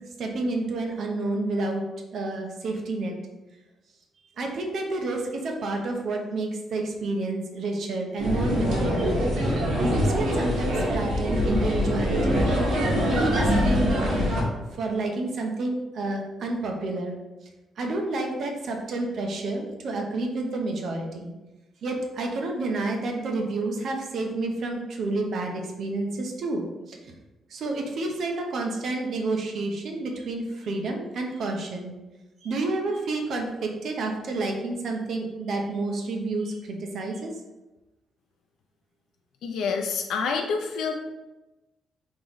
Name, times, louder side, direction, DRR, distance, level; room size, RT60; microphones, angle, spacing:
voice 1, 0.2-1.8 2.1-3.1 4.4-12.5 13.0-14.4 14.7-17.2 17.8-21.3 21.8-27.0 27.5-32.0 32.4-37.3, right 2 dB, 55° right, 2 dB, 0.7 m, -29 dB
sound 1, 8.2-14.4, equal, 75° right, 1.4 m, -24 dB
voice 2, 39.4-41.0, left 5 dB, 85° left, 3 dB, 0.4 m, -27 dB
3.7 x 3.0 x 3.9 m, 1.1 s
cardioid pair, 170°, 0 cm